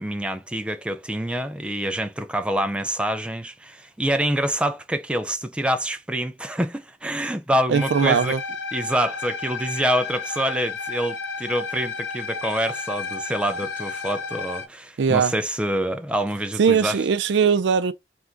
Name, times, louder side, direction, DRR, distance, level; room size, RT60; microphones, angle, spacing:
voice 1, 0.0-8.4 8.7-17.0, right 1 dB, 5° right, 0.4 m, -26 dB
sound 1, 7.7-14.7, left 4 dB, 75° left, 1.0 m, -32 dB
voice 2, 7.7-8.4 15.0-15.3 16.6-17.9, right 6 dB, 75° right, 0.4 m, -20 dB
3.5 x 2.5 x 4.3 m
head